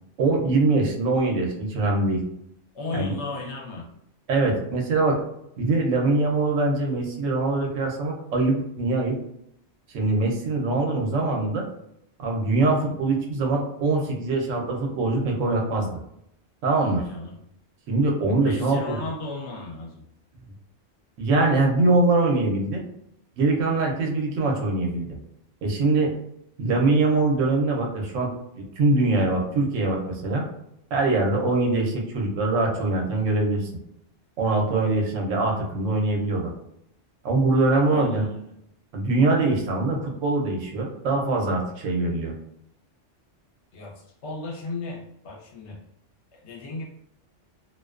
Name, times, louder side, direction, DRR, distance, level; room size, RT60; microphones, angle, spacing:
voice 1, 0.2-2.2 2.9-3.1 4.3-5.2 5.6-9.2 9.9-11.6 12.2-16.0 16.6-17.0 17.9-18.9 21.2-22.8 23.4-25.2 25.6-26.1 26.6-28.3 28.6-30.4 30.9-33.8 34.4-36.5 37.2-38.3 38.9-42.3, right 2 dB, 85° right, 0 dB, 1.0 m, -23 dB
voice 2, 2.7-3.9 16.8-17.4 18.4-20.0 37.9-38.5 43.7-45.8 46.3-46.8, left 3 dB, 70° left, -1 dB, 0.9 m, -35 dB
2.4 x 2.2 x 2.3 m, 0.76 s
omnidirectional pair, 1.3 m